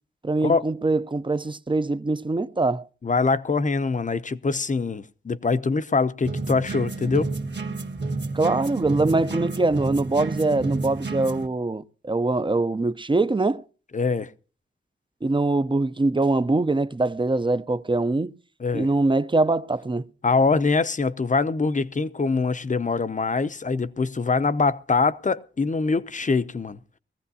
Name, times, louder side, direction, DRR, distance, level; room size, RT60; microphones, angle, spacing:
voice 1, 0.2-2.8 8.3-13.6 15.2-18.3 18.7-20.0, right 2 dB, 25° right, 0.6 m, -23 dB
voice 2, 3.0-7.3 13.9-14.3 18.6-18.9 20.2-26.8, left 4 dB, 40° left, 0.7 m, -23 dB
sound 1, 6.2-11.5, right 3 dB, 60° right, 1.8 m, -30 dB
21.0 x 15.0 x 2.7 m
wide cardioid pair, 75°, 20 cm